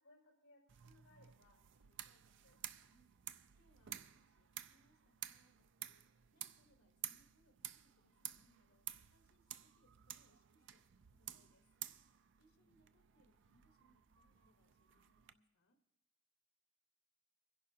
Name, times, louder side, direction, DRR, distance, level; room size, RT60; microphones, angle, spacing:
voice 1, 0.0-2.6 12.5-12.9, left 2 dB, 60° left, -1 dB, 5.5 m, -69 dB
sound 1, 0.7-15.3, right 12 dB, 55° right, 0.4 m, -53 dB
voice 2, 2.8-3.1 3.5-11.7 12.4-15.8, equal, 85° left, 5 dB, 1.3 m, -76 dB
25.0 x 11.0 x 2.8 m, 0.93 s
head